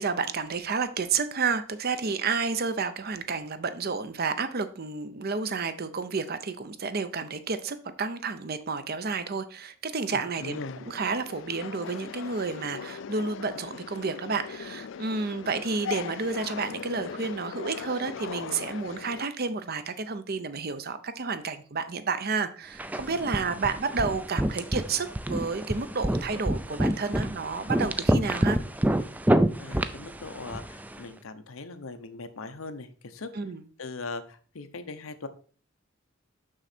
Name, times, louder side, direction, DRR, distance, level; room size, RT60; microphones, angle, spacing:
voice 1, 0.0-10.6 10.9-28.6 33.3-33.6, right 4 dB, 50° right, 11 dB, 0.7 m, -31 dB
voice 2, 10.1-10.8 23.1-23.5 29.6-33.3 33.8-35.3, left 3 dB, 85° left, 9 dB, 0.8 m, -40 dB
sound 1, 10.4-19.2, left 7 dB, 65° left, 0.4 m, -39 dB
sound 2, 22.8-31.0, right 1 dB, 10° right, 0.4 m, -28 dB
6.4 x 6.2 x 4.3 m, 0.41 s
head